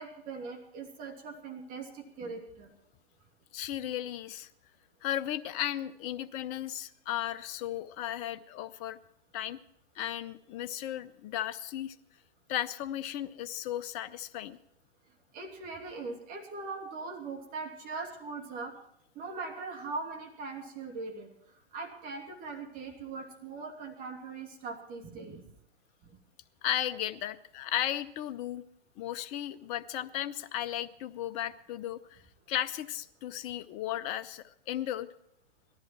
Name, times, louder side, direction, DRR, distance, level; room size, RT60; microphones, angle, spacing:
voice 1, 0.0-2.7 15.3-18.7 19.1-21.3 21.7-25.4 26.0-26.2, right 4 dB, 25° right, 2 dB, 2.7 m, -40 dB
voice 2, 3.5-4.5 5.0-9.0 9.3-9.6 10.0-12.0 12.5-14.6 26.6-28.6 29.0-32.2 32.5-35.1, left 12 dB, 20° left, 14 dB, 0.5 m, -35 dB
18.0 x 13.5 x 4.5 m, 0.75 s
hypercardioid pair, 125°, 32 cm